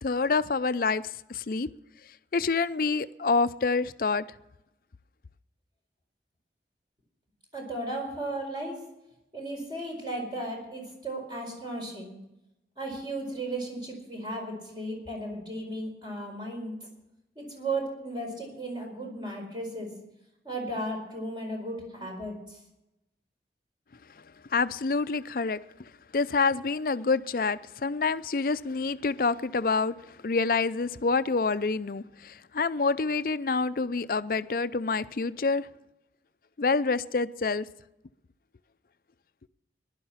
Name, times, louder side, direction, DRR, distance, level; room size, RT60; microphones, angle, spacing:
voice 1, 0.0-1.7 2.3-4.2 24.5-25.6 26.1-35.7 36.6-37.7, left 4 dB, 50° left, 14 dB, 0.5 m, -27 dB
voice 2, 7.5-8.8 9.3-12.2 12.8-16.7 17.4-19.9 20.4-22.6, right 1 dB, 25° right, 0 dB, 4.5 m, -35 dB
16.0 x 11.5 x 5.7 m, 0.91 s
head